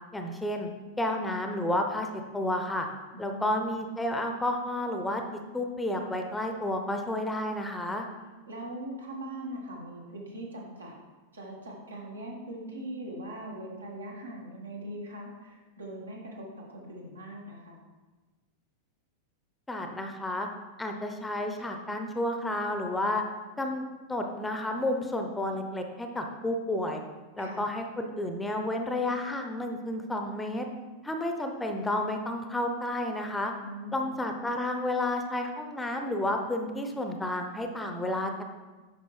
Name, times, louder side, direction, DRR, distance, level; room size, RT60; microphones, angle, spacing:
voice 1, 0.1-0.7 1.0-2.1 2.3-2.9 3.2-8.1 19.7-20.5 20.8-23.2 23.6-23.8 24.1-27.0 27.4-30.7 31.0-33.5 33.9-38.4, left 1 dB, 10° left, 4 dB, 0.7 m, -31 dB
voice 2, 3.1-3.6 8.5-11.0 11.3-17.8 27.4-27.7 33.6-34.2, right 1 dB, 75° right, -2 dB, 1.7 m, -41 dB
9.3 x 5.8 x 3.3 m, 1.3 s
figure-of-eight pair, 90°, 0 cm